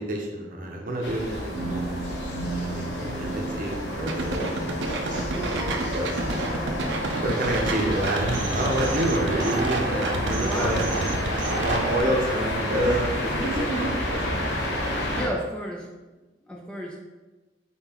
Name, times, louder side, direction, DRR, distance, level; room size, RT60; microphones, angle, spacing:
voice 1, 0.0-2.0 2.5-4.5 5.0-6.4 7.2-10.8 11.6-13.5 13.8-14.2, right 1 dB, 45° right, 0 dB, 0.7 m, -28 dB
sound 1, 1.0-15.3, left 1 dB, 80° left, 0.9 m, -30 dB
sound 2, 1.5-6.9, right 1 dB, 15° right, 1.3 m, -35 dB
sound 3, 4.1-12.0, right 2 dB, 80° right, 0.5 m, -29 dB
voice 2, 10.4-10.9 13.4-13.9 14.9-15.9 16.4-17.0, equal, 5° left, -2 dB, 0.4 m, -32 dB
4.4 x 3.8 x 2.9 m, 1.2 s
head